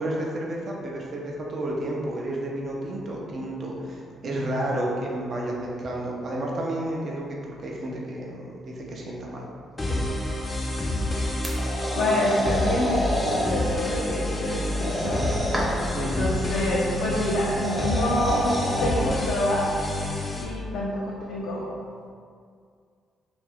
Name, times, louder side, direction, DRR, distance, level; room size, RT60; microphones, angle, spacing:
voice 1, 0.0-7.4 7.6-9.5 9.8-10.1 15.0-15.1 15.9-16.3, right 1 dB, 50° right, -2 dB, 0.5 m, -31 dB
sound 1, 9.8-20.4, left 1 dB, 25° left, 0.5 m, -28 dB
sound 2, 11.4-13.4 14.7-15.9 17.4-18.8, equal, 15° right, 0.7 m, -29 dB
voice 2, 11.9-15.2 16.0-19.7 20.4-21.7, left 1 dB, 80° left, -5 dB, 0.4 m, -27 dB
2.6 x 2.3 x 3.4 m, 2.2 s
cardioid pair, 90°, 0 cm